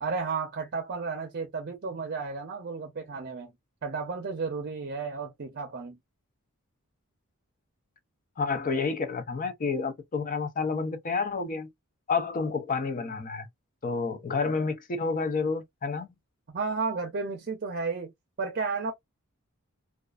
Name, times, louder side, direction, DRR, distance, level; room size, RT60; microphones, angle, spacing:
voice 1, 0.0-3.5 3.8-6.0 16.5-18.1 18.4-18.9, right 4 dB, 45° right, 0.5 m, -33 dB
voice 2, 8.4-11.7 12.1-13.5 13.8-16.1, left 4 dB, 40° left, 0.5 m, -29 dB
2.4 x 2.3 x 2.3 m
head